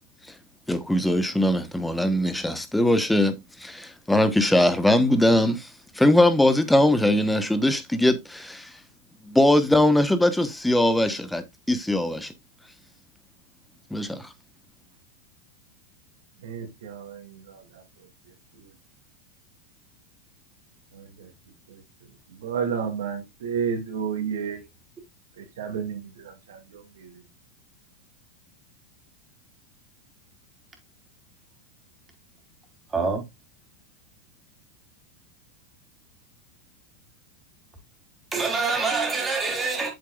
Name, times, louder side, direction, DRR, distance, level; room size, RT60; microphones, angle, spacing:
voice 1, 0.7-5.7 5.9-8.7 9.2-12.3 13.9-14.3, left 1 dB, 5° left, 1.2 m, -21 dB
voice 2, 16.4-17.2 17.5-17.6 22.4-24.6 25.6-26.0, right 7 dB, 75° right, 2.3 m, -29 dB
voice 3, 32.9-33.2 38.3-39.9, right 4 dB, 20° right, 3.7 m, -25 dB
7.6 x 7.5 x 2.5 m
hypercardioid pair, 100°, 0 cm